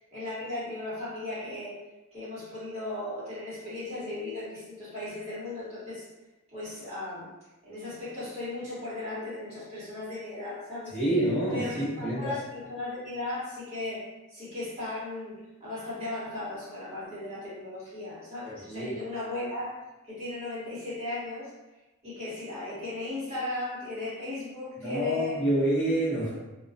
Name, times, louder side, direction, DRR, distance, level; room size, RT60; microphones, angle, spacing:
voice 1, 0.1-1.8 2.1-6.0 6.5-7.3 7.6-11.0 11.5-14.0 14.3-21.5 22.0-25.3 26.3-26.4, left 2 dB, 30° right, -11 dB, 1.1 m, -36 dB
voice 2, 10.9-12.3 18.6-18.9 24.8-26.3, right 1 dB, 5° left, -14 dB, 0.9 m, -27 dB
2.2 x 2.2 x 2.6 m, 1.1 s
head